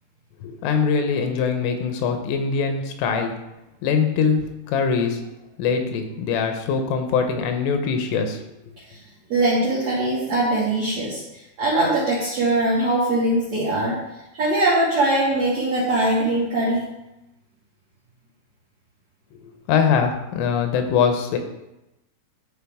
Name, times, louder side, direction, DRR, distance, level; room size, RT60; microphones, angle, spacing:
voice 1, 0.4-3.3 3.8-5.2 5.6-8.4 19.4-21.4, left 6 dB, 80° left, 5 dB, 3.3 m, -22 dB
voice 2, 9.3-11.2 11.6-14.0 14.3-16.9, right 2 dB, 60° right, -6 dB, 1.7 m, -21 dB
12.5 x 4.6 x 3.5 m, 0.93 s
omnidirectional pair, 5.7 m